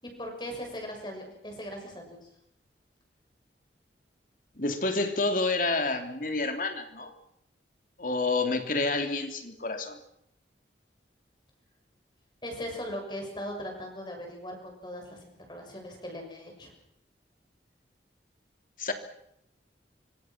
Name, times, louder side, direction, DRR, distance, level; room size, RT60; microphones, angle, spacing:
voice 1, 0.0-2.2 12.4-16.7, equal, 25° left, 2 dB, 6.8 m, -39 dB
voice 2, 4.6-7.1 8.0-10.0 18.8-18.9, left 3 dB, 45° left, 6 dB, 3.1 m, -29 dB
25.5 x 25.5 x 6.1 m, 0.76 s
head